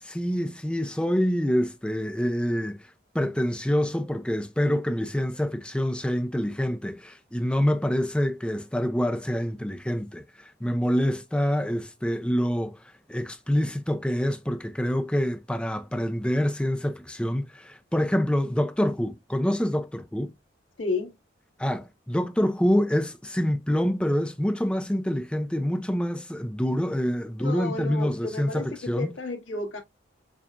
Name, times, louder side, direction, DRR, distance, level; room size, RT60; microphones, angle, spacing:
voice 1, 0.0-2.9 3.1-12.8 13.1-20.3 21.6-29.1, equal, 5° left, 0.4 m, -26 dB
voice 2, 20.8-21.2 27.4-29.8, left 3 dB, 90° left, 2.0 m, -32 dB
7.0 x 2.4 x 2.4 m
head